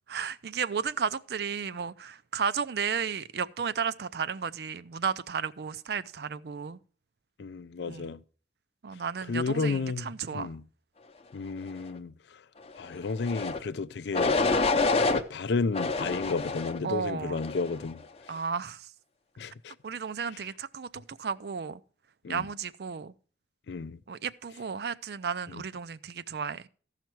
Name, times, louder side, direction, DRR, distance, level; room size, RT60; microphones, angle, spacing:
voice 1, 0.1-6.8 7.9-8.1 8.8-10.5 16.8-17.4 18.3-18.9 19.8-21.8 22.3-23.1 24.1-26.6, right 6 dB, 60° right, 0.4 m, -33 dB
voice 2, 7.4-8.2 9.3-10.6 11.3-12.1 12.8-14.3 15.0-18.0 19.4-19.7 22.2-22.5 23.7-24.0 25.5-25.6, left 4 dB, 75° left, 0.4 m, -32 dB
sound 1, 13.2-13.6 14.1-15.2 15.7-16.8 17.4-17.8, left 3 dB, 35° left, 0.6 m, -27 dB
14.5 x 5.8 x 4.5 m
head